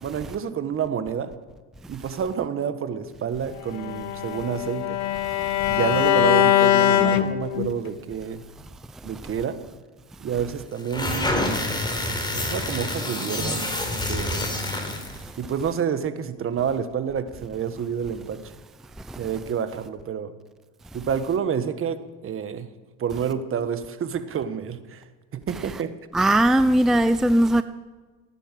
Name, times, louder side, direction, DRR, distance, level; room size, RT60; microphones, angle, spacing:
voice 1, 0.0-1.3 1.9-5.0 5.7-8.4 9.0-9.6 10.2-11.3 12.3-13.6 14.0-14.5 15.4-18.5 19.2-20.3 20.9-22.7 23.0-25.0 25.3-25.9, right 7 dB, 40° right, 10 dB, 1.5 m, -28 dB
Bowed string instrument, 3.7-7.9, left 11 dB, 60° left, 1.2 m, -22 dB
sound 1, 10.8-15.2, left 1 dB, 15° left, 3.9 m, -27 dB
voice 2, 26.1-27.6, right 1 dB, ahead, 11 dB, 0.5 m, -19 dB
17.0 x 9.9 x 7.6 m, 1.3 s
supercardioid pair, 95°, 32 cm